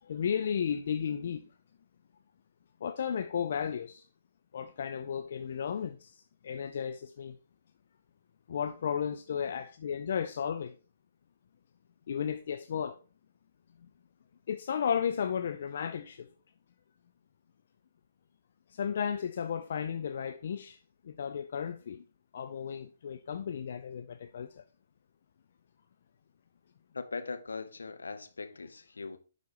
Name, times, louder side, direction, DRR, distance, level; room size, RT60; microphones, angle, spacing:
voice 1, 0.0-1.5 2.8-4.0 4.5-7.4 8.5-10.7 12.1-13.0 13.8-13.9 14.5-16.3 18.7-20.8 21.0-22.0 22.3-24.6, left 7 dB, 50° left, 0.4 m, -34 dB
voice 2, 26.9-29.2, left 4 dB, 70° left, 0.8 m, -40 dB
11.5 x 4.0 x 2.9 m
figure-of-eight pair, 125°, 0 cm